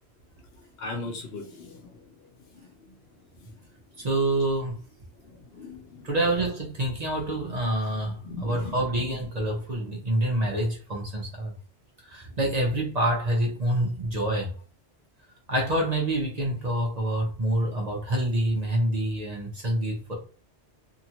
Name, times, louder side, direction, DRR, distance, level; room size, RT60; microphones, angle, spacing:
voice 1, 0.8-1.8 5.5-6.0 8.2-8.8, left 3 dB, 70° left, 0.9 m, -37 dB
voice 2, 4.0-4.8 6.0-11.5 12.1-14.5 15.5-20.2, right 1 dB, 40° right, 0.8 m, -27 dB
2.8 x 2.4 x 2.8 m
omnidirectional pair, 1.1 m